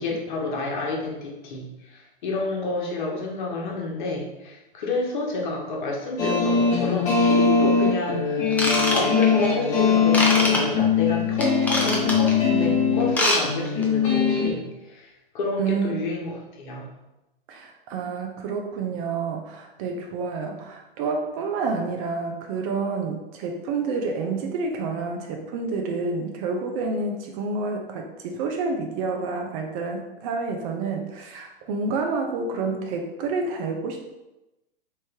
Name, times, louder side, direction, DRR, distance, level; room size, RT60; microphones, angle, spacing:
voice 1, 0.0-8.5 8.9-16.9, left 3 dB, 55° left, -1 dB, 1.2 m, -29 dB
sound 1, 6.2-14.5, left 5 dB, 25° left, 1.3 m, -21 dB
Ratchet pawl / Tools, 8.5-9.5 10.1-10.6 11.4-12.3 13.0-13.4 13.6-13.8 14.4-14.5, left 1 dB, 5° left, 0.5 m, -23 dB
voice 2, 15.6-15.9 17.5-34.1, right 4 dB, 35° right, 3 dB, 0.6 m, -29 dB
3.9 x 3.2 x 3.6 m, 0.98 s
hypercardioid pair, 125°, 29 cm